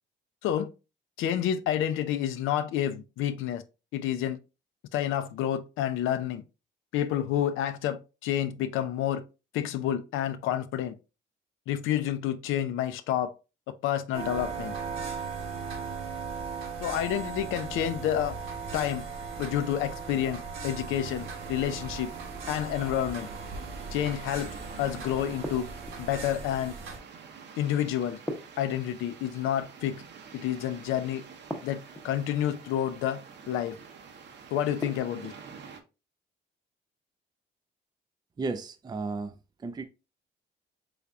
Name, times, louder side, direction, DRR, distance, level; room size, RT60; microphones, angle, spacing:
voice 1, 1.2-3.6 3.9-4.4 4.9-6.4 6.9-9.2 9.5-10.9 11.7-13.3 13.8-14.7 16.8-18.3 18.7-19.0 19.4-22.1 22.5-23.3 23.9-24.5 24.8-25.7 26.0-26.7 27.6-28.2 28.6-30.0 30.3-31.2 31.6-33.2 33.5-33.8 34.5-35.3, left 10 dB, 90° left, 0.4 m, -29 dB
sound 1, 14.1-27.0, right 5 dB, 80° right, 1.2 m, -38 dB
sound 2, 21.0-35.8, right 6 dB, 60° right, 0.7 m, -47 dB
sound 3, 25.4-26.2 28.3-29.3 31.5-32.3 34.8-35.5, equal, 5° left, 0.7 m, -39 dB
voice 2, 38.4-39.3 39.6-39.9, right 3 dB, 20° right, 0.4 m, -33 dB
3.9 x 3.3 x 2.3 m
cardioid pair, 90°, 20 cm